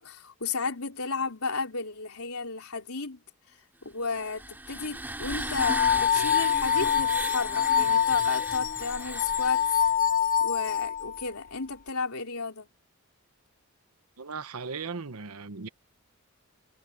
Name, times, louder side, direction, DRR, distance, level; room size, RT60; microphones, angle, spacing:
voice 1, 0.0-3.2 3.8-9.8 10.4-12.7, left 4 dB, 80° left, 4.0 m, -33 dB
sound 1, 4.1-9.9, right 2 dB, 10° right, 2.4 m, -36 dB
sound 2, 5.4-11.3, left 8 dB, 40° left, 0.8 m, -25 dB
voice 2, 14.2-15.7, right 5 dB, 90° right, 1.0 m, -37 dB
head